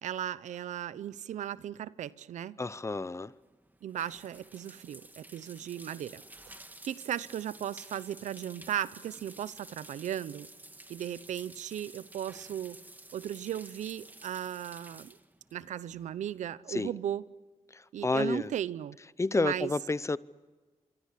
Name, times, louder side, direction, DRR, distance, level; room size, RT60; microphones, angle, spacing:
voice 1, 0.0-2.6 3.8-6.5 6.8-10.5 10.9-12.8 13.1-15.2 15.5-17.2 17.9-19.0 19.4-19.7, right 10 dB, 90° right, 0.7 m, -36 dB
voice 2, 2.6-3.3 16.7-16.9 17.7-18.5 19.2-20.2, left 3 dB, 25° left, 0.7 m, -30 dB
sound 1, 3.2-16.4, right 1 dB, 15° right, 1.7 m, -52 dB
25.5 x 24.0 x 8.5 m
cardioid pair, 75°, 12 cm